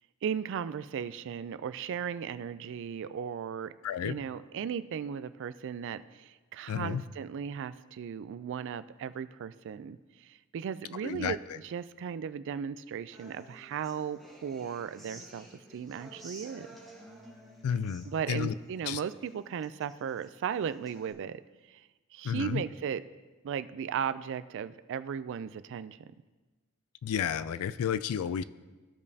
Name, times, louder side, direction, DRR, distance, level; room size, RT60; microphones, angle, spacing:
voice 1, 0.2-3.7 4.0-11.4 11.6-15.5 15.7-16.7 18.0-21.4 21.7-21.8 22.1-23.0 23.4-26.0, right 7 dB, 55° right, 14 dB, 0.3 m, -36 dB
voice 2, 3.8-4.2 6.7-7.0 11.0-11.6 17.6-18.5 18.8-19.0 22.2-22.6 27.0-28.4, left 8 dB, 75° left, 15 dB, 0.3 m, -32 dB
Human voice / Acoustic guitar, 13.1-21.1, right 1 dB, ahead, 1.2 m, -53 dB
15.5 x 5.1 x 2.7 m, 1.2 s
head